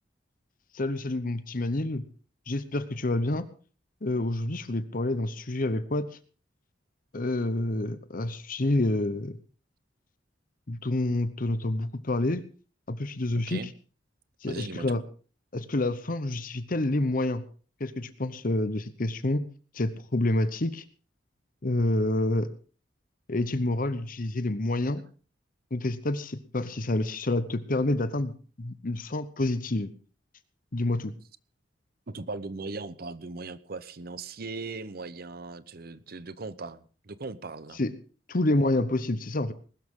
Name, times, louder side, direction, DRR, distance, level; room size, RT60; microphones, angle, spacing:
voice 1, 0.7-2.0 2.5-3.4 4.0-6.1 7.1-9.4 10.7-12.4 12.9-13.6 14.4-15.0 15.5-17.4 17.8-19.4 19.7-20.8 21.6-22.5 23.3-25.0 25.7-29.9 30.7-31.1 37.8-37.9 38.3-39.5, left 2 dB, 50° left, 13 dB, 0.9 m, -28 dB
voice 2, 14.4-15.0 32.1-37.8, right 3 dB, 55° right, 15 dB, 0.8 m, -38 dB
20.5 x 12.5 x 3.7 m, 0.39 s
head